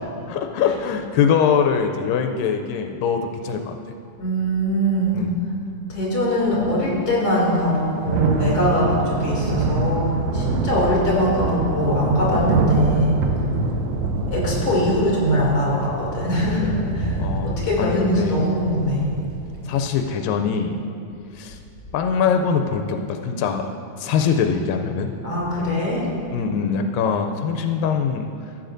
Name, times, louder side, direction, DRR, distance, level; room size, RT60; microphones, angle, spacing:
voice 1, 0.3-3.8 5.1-5.4 11.9-12.3 17.2-18.4 19.7-20.8 21.3-21.6 21.9-23.7 24.0-25.1 26.3-28.3, left 6 dB, 85° left, 5 dB, 2.2 m, -23 dB
voice 2, 4.2-5.2 5.9-13.2 14.3-19.1 25.2-26.0, equal, 30° left, -6 dB, 2.9 m, -22 dB
Thunder / Rain, 7.6-20.0, right 3 dB, 80° right, 1.6 m, -26 dB
14.5 x 8.7 x 2.6 m, 2.6 s
omnidirectional pair, 3.9 m